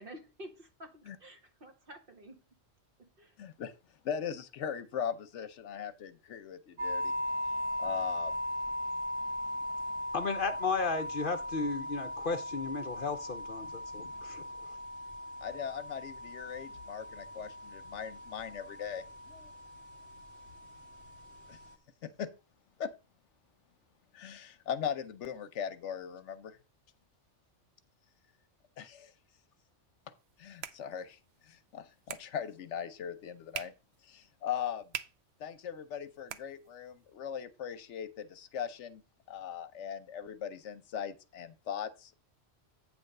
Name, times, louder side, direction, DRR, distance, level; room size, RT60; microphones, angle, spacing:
voice 1, 0.0-2.4 3.0-3.3, equal, 50° right, 1.3 m, -50 dB
voice 2, 3.4-3.7 4.0-7.1 7.8-8.4 15.4-19.5 21.5-21.6 22.0-22.3 22.8-22.9 24.1-26.6 28.8-29.1 30.4-33.7 34.0-34.9 35.4-39.0 39.3-42.2, left 8 dB, 75° left, 1.0 m, -39 dB
sound 1, 6.8-21.7, left 1 dB, 85° right, 1.9 m, -39 dB
voice 3, 10.1-14.4, left 4 dB, 55° left, 0.8 m, -34 dB
sound 2, 30.1-37.1, right 9 dB, 65° right, 0.8 m, -48 dB
8.6 x 3.5 x 6.4 m
omnidirectional pair, 1.2 m